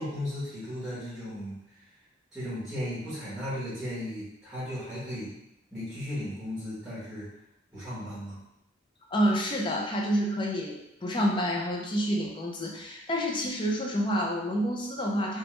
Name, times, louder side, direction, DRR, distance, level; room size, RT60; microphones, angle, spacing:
voice 1, 0.0-1.8 2.3-5.3 5.7-7.3 7.7-8.4, left 1 dB, 5° right, -11 dB, 1.0 m, -36 dB
voice 2, 9.1-15.4, equal, 25° left, 0 dB, 0.4 m, -28 dB
3.0 x 2.2 x 3.0 m, 0.83 s
head